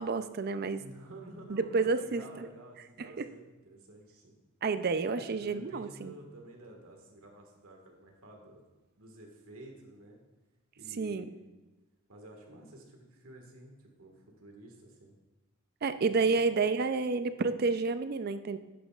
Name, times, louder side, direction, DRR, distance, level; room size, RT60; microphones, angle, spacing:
voice 1, 0.0-0.8 1.5-2.2 3.0-3.3 4.6-6.1 11.0-11.3 15.8-18.6, right 4 dB, 45° right, 11 dB, 0.4 m, -30 dB
voice 2, 0.8-4.4 5.1-8.6 9.0-10.2 10.7-11.5 12.1-15.2 16.1-16.4, right 1 dB, 85° right, 1 dB, 1.7 m, -51 dB
11.0 x 9.1 x 2.4 m, 1.1 s
head